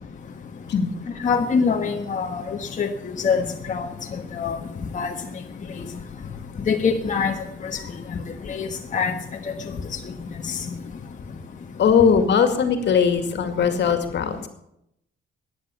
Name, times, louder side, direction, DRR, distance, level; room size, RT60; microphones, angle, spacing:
voice 1, 1.2-3.4 3.7-3.9 4.4-4.6 4.9-5.1 6.7-7.3 8.5-9.1, left 5 dB, 40° left, 2 dB, 1.4 m, -23 dB
voice 2, 11.8-14.5, left 6 dB, 65° left, 7 dB, 2.2 m, -19 dB
14.0 x 10.0 x 7.1 m, 0.79 s
cardioid pair, 90°, 20 cm